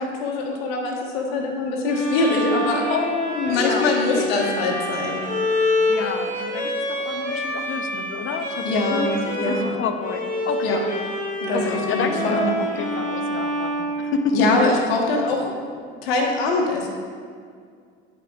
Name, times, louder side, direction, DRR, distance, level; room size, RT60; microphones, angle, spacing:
voice 1, 0.0-2.9 3.5-5.2 8.6-9.8 10.6-10.8 11.4-12.5 14.3-15.6 16.0-16.9, left 2 dB, 75° left, 0 dB, 1.4 m, -23 dB
Bowed string instrument, 1.9-9.7 10.0-14.8, left 1 dB, 25° left, 1.5 m, -27 dB
voice 2, 2.9-4.3 5.9-10.8 11.5-14.5, left 5 dB, 45° left, 7 dB, 0.8 m, -28 dB
11.5 x 5.2 x 2.4 m, 2.1 s
hypercardioid pair, 75°, 30 cm